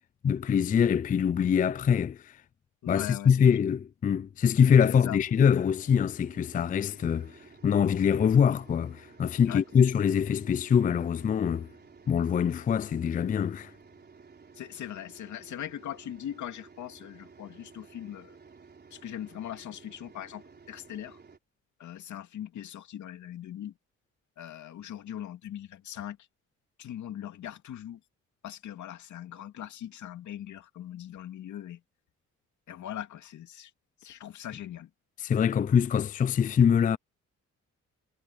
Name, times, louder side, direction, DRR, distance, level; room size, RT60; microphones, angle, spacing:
voice 1, 0.2-2.4 2.9-11.7 12.1-13.7 35.2-37.0, left 7 dB, 30° left, 0.4 m, -24 dB
voice 2, 2.8-3.6 5.0-5.2 9.4-9.6 14.6-18.3 18.9-20.4 20.7-21.2 21.8-23.7 24.4-26.2 26.8-28.0 28.4-31.8 32.7-33.7 34.0-34.9, left 11 dB, 70° left, 2.7 m, -40 dB
sound 1, 5.2-21.4, right 5 dB, 35° right, 4.3 m, -54 dB
cardioid pair, 90°, 30 cm